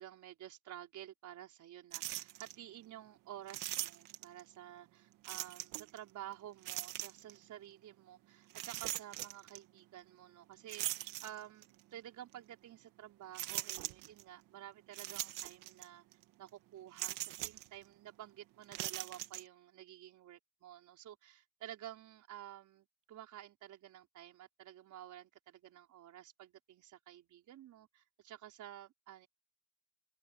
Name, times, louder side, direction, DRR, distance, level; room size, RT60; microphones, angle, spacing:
voice 1, 0.0-16.0 16.4-29.3, right 12 dB, 65° right, 4.9 m, -52 dB
sound 1, 1.9-2.5 3.5-4.4 5.2-6.0 6.6-7.4 8.5-9.6 10.7-11.7 12.3-12.4 13.3-14.2 14.9-15.9 16.1-16.2 17.0-17.7 18.6-19.4, right 16 dB, 85° right, 2.1 m, -41 dB
open air
cardioid pair, 100°, 32 cm